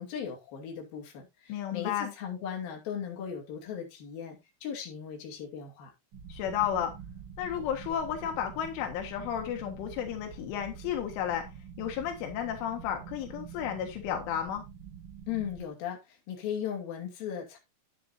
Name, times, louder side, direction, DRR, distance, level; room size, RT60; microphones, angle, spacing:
voice 1, 0.0-5.9 15.3-17.6, left 8 dB, 55° left, 4.1 m, -37 dB
voice 2, 1.5-2.1 6.3-6.9 7.4-11.5 11.8-14.7, left 9 dB, 85° left, 4.0 m, -32 dB
sound 1, 6.1-15.7, right 7 dB, 70° right, 1.1 m, -46 dB
10.0 x 10.0 x 2.7 m
omnidirectional pair, 5.5 m